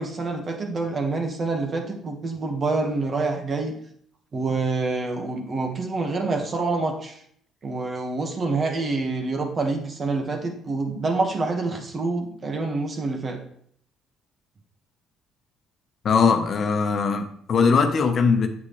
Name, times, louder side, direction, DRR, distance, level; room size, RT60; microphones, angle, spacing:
voice 1, 0.0-3.7 4.3-7.2 7.6-13.4, right 3 dB, 45° right, 1.7 m, -27 dB
voice 2, 16.0-18.5, left 5 dB, 55° left, 1.1 m, -20 dB
8.4 x 7.5 x 3.3 m
supercardioid pair, 70°, 0 cm